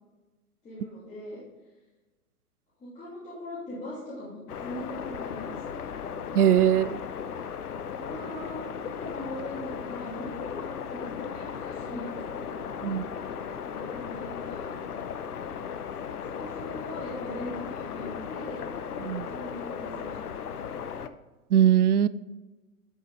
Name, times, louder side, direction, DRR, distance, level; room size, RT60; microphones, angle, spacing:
voice 1, 0.6-1.4 2.8-5.7 6.7-6.9 7.9-12.6 13.6-14.7 16.1-18.6 19.3-20.7, left 1 dB, 15° left, -10 dB, 2.9 m, -41 dB
sound 1, 4.5-21.1, left 7 dB, 75° left, 0.8 m, -36 dB
voice 2, 6.3-7.0 12.8-13.1 19.0-19.3 21.5-22.1, right 10 dB, 75° right, 17 dB, 0.6 m, -21 dB
10.5 x 6.3 x 3.6 m, 1.1 s
figure-of-eight pair, 115°, 46 cm